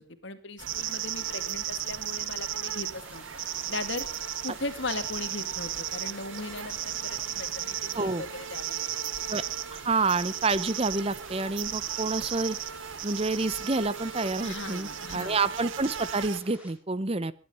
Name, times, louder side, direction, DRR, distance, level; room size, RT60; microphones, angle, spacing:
voice 1, 0.0-3.2 3.7-4.1 4.4-9.1 14.4-15.4, left 3 dB, 60° left, 9 dB, 2.1 m, -38 dB
sound 1, 0.6-16.4, right 10 dB, 70° right, 0.9 m, -35 dB
sound 2, 2.9-16.7, equal, 5° right, 4.9 m, -52 dB
voice 2, 9.7-12.6 13.0-17.3, right 3 dB, 30° right, 17 dB, 0.7 m, -28 dB
21.5 x 11.5 x 5.4 m, 0.38 s
head